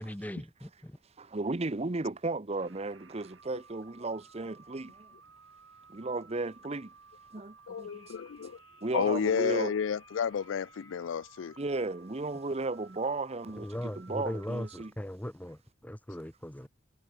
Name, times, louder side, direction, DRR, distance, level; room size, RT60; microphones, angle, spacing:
voice 1, 0.0-1.0 13.6-16.7, equal, 10° left, 1.0 m, -39 dB
voice 2, 1.2-5.1 5.9-6.9 7.3-8.1 8.8-9.7 11.6-13.7 14.0-14.9, right 3 dB, 30° right, 0.8 m, -34 dB
sound 1, 2.6-14.9, right 5 dB, 80° right, 3.8 m, -57 dB
voice 3, 7.7-8.6 8.9-11.6, left 7 dB, 75° left, 0.4 m, -31 dB
sound 2, 7.9-11.4, left 9 dB, 90° left, 5.9 m, -61 dB
head